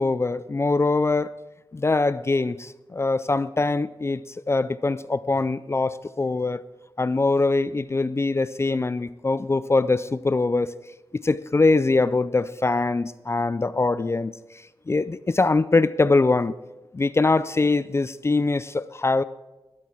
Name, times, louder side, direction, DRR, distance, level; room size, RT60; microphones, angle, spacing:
voice 1, 0.0-1.4 1.7-4.2 4.5-6.6 7.0-10.7 11.2-14.3 14.9-16.5 16.9-19.2, left 3 dB, 30° left, 16 dB, 0.4 m, -23 dB
13.0 x 8.0 x 7.4 m, 1.1 s
wide cardioid pair, 95°, 9 cm